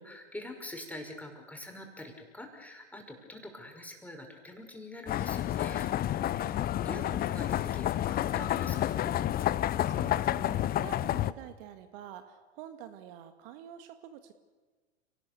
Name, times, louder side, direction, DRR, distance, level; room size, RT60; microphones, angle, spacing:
voice 1, 0.0-9.1, left 1 dB, 5° left, 3 dB, 5.7 m, -45 dB
sound 1, 5.1-11.3, left 12 dB, 25° left, 0.7 m, -30 dB
voice 2, 6.2-6.7 9.6-14.3, right 10 dB, 50° right, 9 dB, 2.1 m, -48 dB
30.0 x 19.5 x 7.0 m, 1.3 s
figure-of-eight pair, 90°, 34 cm